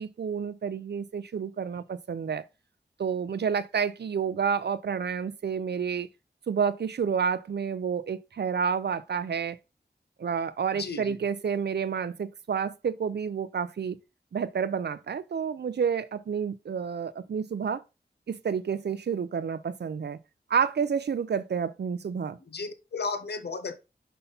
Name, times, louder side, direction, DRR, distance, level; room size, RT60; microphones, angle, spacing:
voice 1, 0.0-2.4 3.0-6.1 6.5-9.6 10.2-14.0 14.3-17.8 18.3-20.2 20.5-22.4, right 6 dB, 80° right, 0.5 m, -29 dB
voice 2, 10.7-11.2 22.5-23.8, left 4 dB, 75° left, 0.8 m, -34 dB
5.6 x 5.6 x 3.9 m
wide cardioid pair, 60°, 17 cm